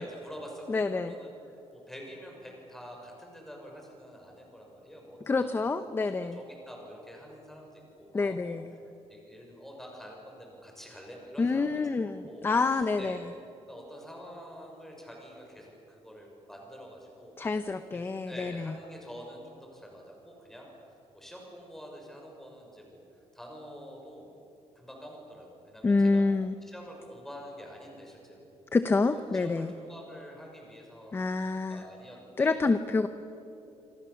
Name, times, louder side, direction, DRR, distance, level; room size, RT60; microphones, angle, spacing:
voice 1, 0.0-5.9 6.3-8.6 9.1-13.2 13.7-17.4 17.9-20.7 21.1-23.0 23.3-24.3 24.7-26.2 26.6-28.5 29.0-32.6, equal, 5° left, 0 dB, 6.5 m, -47 dB
voice 2, 0.7-1.1 5.3-6.4 8.1-8.7 11.4-13.2 17.4-18.7 25.8-26.5 28.7-29.7 31.1-31.8 32.4-33.1, left 3 dB, 20° left, 10 dB, 0.8 m, -27 dB
27.0 x 26.5 x 7.1 m, 2.9 s
cardioid pair, 160°, 11 cm